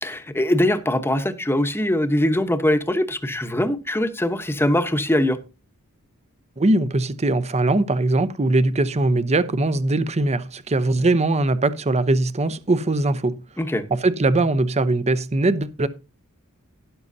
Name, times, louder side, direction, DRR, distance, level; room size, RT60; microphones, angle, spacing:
voice 1, 0.0-5.4 13.6-13.8, left 1 dB, 10° left, 1.0 m, -22 dB
voice 2, 6.6-13.4 14.0-15.9, right 2 dB, 30° right, 0.7 m, -21 dB
12.5 x 11.0 x 2.7 m
head